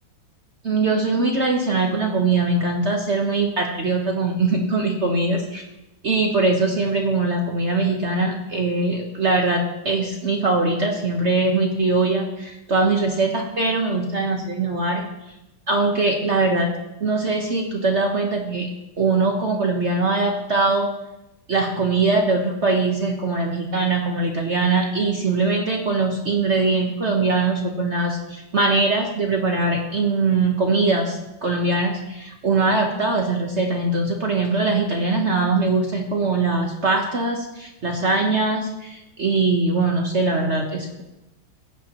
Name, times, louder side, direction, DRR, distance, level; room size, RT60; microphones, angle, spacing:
voice 1, 0.6-5.6 6.0-15.0 15.7-16.7 17.0-18.7 19.0-20.9 21.5-41.0, right 3 dB, 45° right, 1 dB, 1.1 m, -22 dB
16.5 x 8.9 x 3.0 m, 0.93 s
omnidirectional pair, 2.0 m